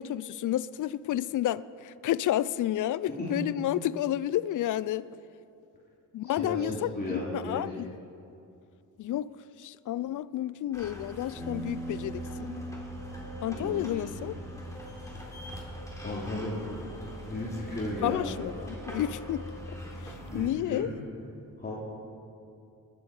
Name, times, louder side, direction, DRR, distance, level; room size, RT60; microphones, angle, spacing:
voice 1, 0.0-5.1 6.1-7.9 9.0-9.3 9.6-12.6 13.4-14.4 18.0-19.4 20.3-20.9, left 12 dB, 65° left, 0.5 m, -31 dB
voice 2, 6.2-7.6 13.5-14.2 16.0-16.6 17.2-18.3 20.3-20.9 21.6-21.7, left 1 dB, 25° left, 3.0 m, -35 dB
sound 1, 10.7-20.5, equal, 10° left, 3.6 m, -42 dB
sound 2, 11.4-17.6, right 1 dB, 10° right, 3.4 m, -43 dB
21.0 x 8.6 x 4.9 m
cardioid pair, 65°, 34 cm